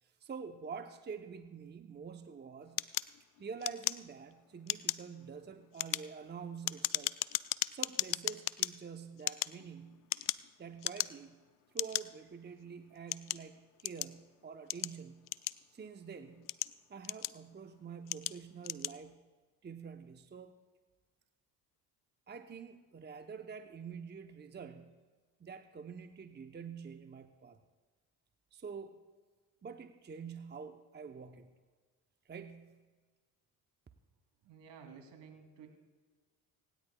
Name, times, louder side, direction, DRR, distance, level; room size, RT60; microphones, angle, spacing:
voice 1, 0.0-2.8 3.4-7.2 7.7-10.0 10.6-11.4 11.7-15.2 15.7-16.5 16.9-19.2 19.6-20.6 22.3-24.9 25.4-27.6 28.5-29.0 29.6-31.5 32.2-32.8, right 6 dB, 25° right, 7 dB, 0.8 m, -47 dB
sound 1, 2.8-4.3 4.6-5.1 5.6-8.7 9.2-10.5 10.8-11.3 11.8-12.0 12.7-14.2 14.7-15.9 16.3-17.5 18.1-18.4 18.6-19.0, left 16 dB, 50° left, 0.5 m, -36 dB
voice 2, 34.4-35.7, right 6 dB, 65° right, 3 dB, 2.8 m, -53 dB
25.5 x 10.5 x 2.3 m, 1.4 s
hypercardioid pair, 60°, 45 cm